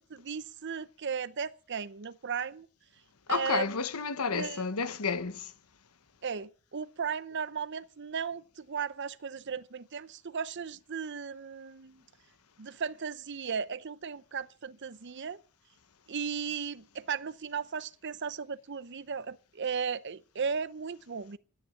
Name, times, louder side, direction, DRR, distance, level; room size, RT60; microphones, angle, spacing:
voice 1, 0.1-2.7 3.3-3.8 4.3-4.6 6.2-12.0 12.6-15.4 16.1-21.4, right 6 dB, 55° right, 0.7 m, -36 dB
voice 2, 3.3-5.5, left 5 dB, 80° left, 1.0 m, -31 dB
13.5 x 9.6 x 8.4 m
head